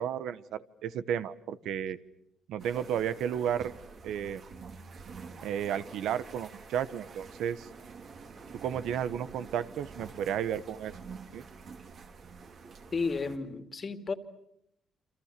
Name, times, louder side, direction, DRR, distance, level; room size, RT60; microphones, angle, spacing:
voice 1, 0.0-2.0 2.5-3.7 4.0-4.4 5.4-7.7 8.6-10.9 11.3-11.4, right 9 dB, 80° right, 14 dB, 1.1 m, -33 dB
sound 1, 2.6-13.4, right 4 dB, 60° right, 3.6 m, -47 dB
voice 2, 12.9-14.1, left 4 dB, 40° left, 9 dB, 2.4 m, -33 dB
28.5 x 26.5 x 6.8 m, 0.79 s
cardioid pair, 90°, 0 cm